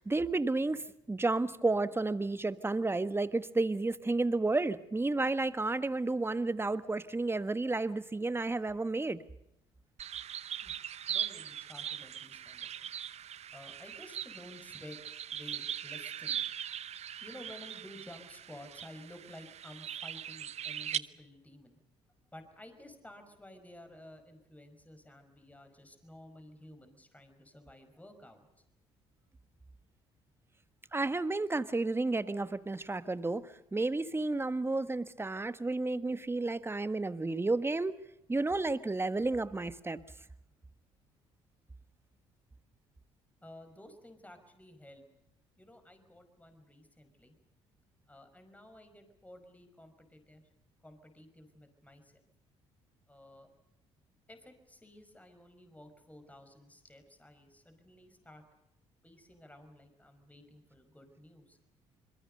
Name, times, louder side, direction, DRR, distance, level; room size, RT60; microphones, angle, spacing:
voice 1, 0.0-9.2 30.9-38.0 38.3-40.0, right 2 dB, 20° right, 13 dB, 1.4 m, -31 dB
sound 1, 10.0-21.0, right 9 dB, 55° right, 0.8 m, -40 dB
voice 2, 11.1-13.0 13.5-16.4 16.7-16.8 17.2-21.8 22.3-28.6 43.4-45.1 45.6-47.4 48.1-50.4 50.8-52.3 53.1-53.5 54.3-58.4 59.0-61.6, left 1 dB, 10° left, 7 dB, 5.3 m, -53 dB
27.0 x 22.0 x 6.7 m, 0.82 s
supercardioid pair, 60°, 13 cm